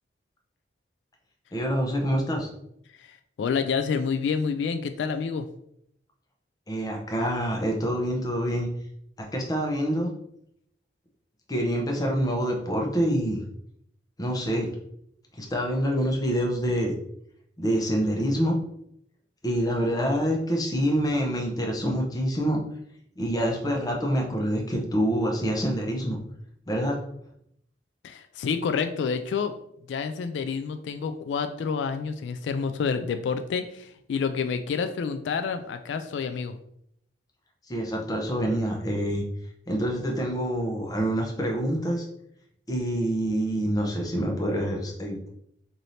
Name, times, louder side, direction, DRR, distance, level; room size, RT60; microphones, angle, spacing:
voice 1, 1.5-2.5 6.7-8.7 9.2-10.1 11.5-13.4 14.2-14.7 15.4-16.9 17.6-18.5 19.4-22.6 23.2-26.2 26.7-27.0 37.7-39.2 39.7-42.0 42.7-45.3, equal, 20° left, 1 dB, 0.8 m, -26 dB
voice 2, 3.0-5.5 28.0-29.5 29.9-36.5, left 5 dB, 85° left, 9 dB, 0.3 m, -28 dB
3.2 x 2.7 x 4.1 m, 0.73 s
head